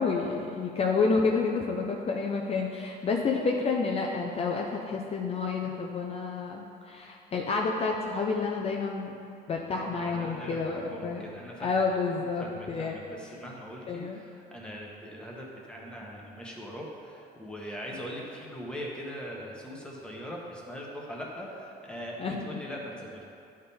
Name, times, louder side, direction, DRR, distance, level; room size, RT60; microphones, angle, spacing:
voice 1, 0.0-9.1 9.5-11.3 11.6-13.0 13.9-14.2 22.2-22.6, left 4 dB, 35° left, 0 dB, 0.6 m, -29 dB
voice 2, 9.7-11.7 12.1-23.2, equal, 5° left, -3 dB, 1.2 m, -41 dB
10.5 x 3.7 x 4.3 m, 2.6 s
cardioid pair, 110°, 17 cm